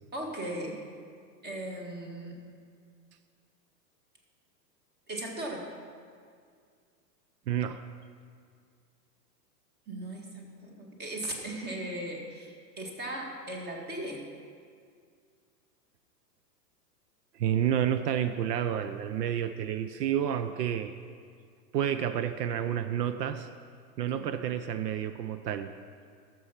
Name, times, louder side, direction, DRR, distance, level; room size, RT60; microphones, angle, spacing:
voice 1, 0.1-0.9 1.4-2.4 5.1-5.7 9.9-14.3 24.1-24.4, right 1 dB, 20° right, 1 dB, 1.8 m, -38 dB
voice 2, 7.5-7.8 17.3-20.9 21.7-23.5 24.0-25.7, right 9 dB, 75° right, 10 dB, 0.7 m, -30 dB
13.0 x 7.1 x 5.9 m, 2.1 s
hypercardioid pair, 125°, 48 cm